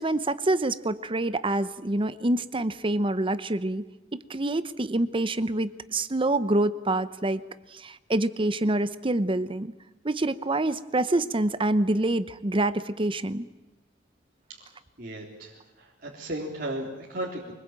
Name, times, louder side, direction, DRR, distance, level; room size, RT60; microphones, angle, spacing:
voice 1, 0.0-3.8 4.1-7.4 7.7-9.7 10.0-13.5, right 2 dB, 30° right, 14 dB, 0.8 m, -26 dB
voice 2, 15.0-17.5, right 1 dB, 50° right, -3 dB, 3.7 m, -35 dB
24.0 x 21.0 x 9.0 m, 1.1 s
head